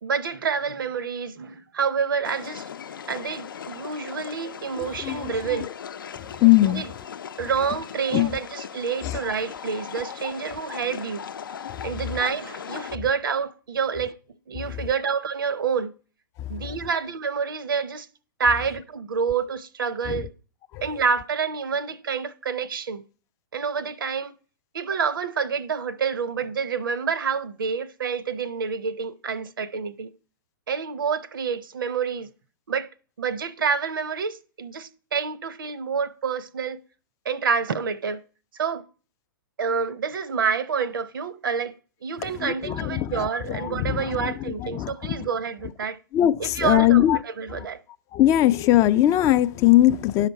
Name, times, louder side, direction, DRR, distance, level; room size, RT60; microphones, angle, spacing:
voice 1, 0.0-2.6 3.1-5.7 6.6-6.9 7.4-11.2 11.8-14.1 14.5-15.9 16.5-18.1 18.4-20.3 20.8-23.0 23.5-24.3 24.7-30.1 30.7-32.3 32.7-32.9 33.2-36.8 37.2-38.2 38.5-38.8 39.6-41.7 42.0-46.0 46.4-47.8, right 6 dB, 80° right, 0.8 m, -28 dB
sound 1, 2.2-13.0, left 8 dB, 80° left, 0.6 m, -38 dB
voice 2, 4.8-5.3 6.2-6.8 8.1-8.3 9.0-9.2 11.7-11.8 14.6-14.8 16.6-16.7 20.7-20.8 42.4-44.3 44.6-45.3 46.1-47.2 47.5-47.7 48.1-50.3, left 14 dB, 30° left, 0.4 m, -21 dB
11.0 x 5.7 x 4.5 m
hypercardioid pair, 120°, 11 cm